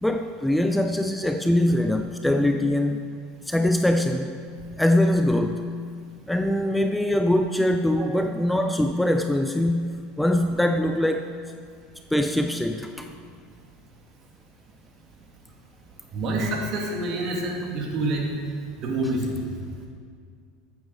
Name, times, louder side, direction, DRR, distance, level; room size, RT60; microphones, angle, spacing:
voice 1, 0.0-3.0 3.5-4.4 4.8-5.7 6.3-11.4 12.1-13.1, left 1 dB, 5° left, 6 dB, 0.5 m, -23 dB
voice 2, 16.1-18.3 18.8-19.4, right 2 dB, 45° right, 0 dB, 2.4 m, -27 dB
13.0 x 8.6 x 4.7 m, 2.1 s
supercardioid pair, 110°, 0 cm